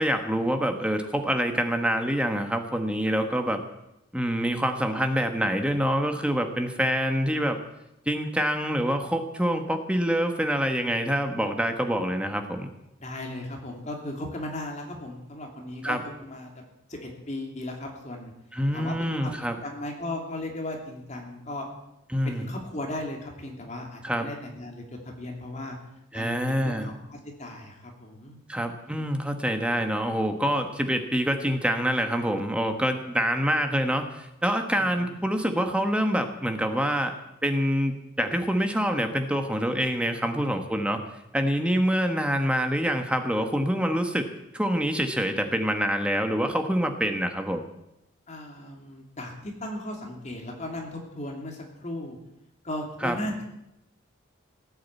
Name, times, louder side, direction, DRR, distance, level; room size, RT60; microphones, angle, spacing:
voice 1, 0.0-3.6 4.1-7.6 8.1-12.7 15.8-16.0 18.5-19.6 22.1-22.5 24.0-24.3 26.1-26.9 28.5-37.1 37.4-41.0 41.3-44.3 44.5-47.7 53.0-53.2, equal, 5° right, 6 dB, 1.2 m, -26 dB
voice 2, 13.0-16.5 16.9-18.3 18.7-21.7 22.2-25.8 26.1-28.4 28.8-29.1 34.8-35.2 48.3-52.2 52.6-53.5, left 1 dB, 35° left, 1 dB, 2.8 m, -36 dB
18.0 x 8.7 x 8.3 m, 0.87 s
head